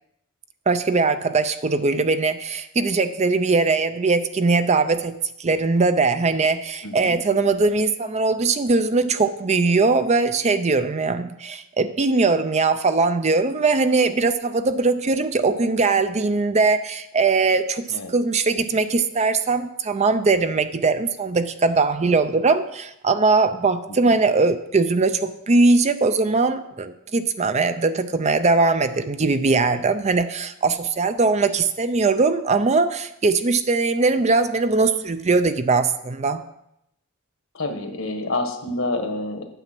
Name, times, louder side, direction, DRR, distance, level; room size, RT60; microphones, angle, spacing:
voice 1, 0.7-17.9 18.1-36.4, right 3 dB, 30° right, 10 dB, 0.5 m, -20 dB
voice 2, 6.8-7.2 17.9-18.1 24.0-24.2 37.5-39.5, left 2 dB, 65° left, 6 dB, 1.4 m, -28 dB
9.1 x 8.2 x 6.0 m, 0.81 s
head